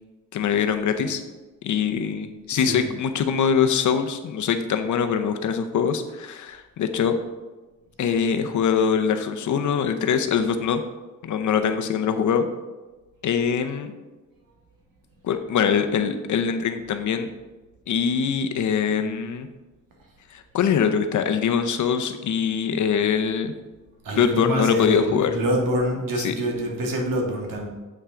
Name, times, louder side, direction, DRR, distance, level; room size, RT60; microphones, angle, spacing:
voice 1, 0.3-1.2 1.6-7.1 8.0-10.8 11.2-12.5 13.2-13.9 15.2-17.3 17.9-19.5 20.3-23.5 24.2-25.4 26.2-26.3, left 7 dB, 65° left, 7 dB, 0.7 m, -23 dB
voice 2, 2.5-2.8 19.0-19.1 24.0-27.7, right 1 dB, 90° right, 1 dB, 1.6 m, -26 dB
8.1 x 5.7 x 3.7 m, 1.2 s
wide cardioid pair, 155°, 32 cm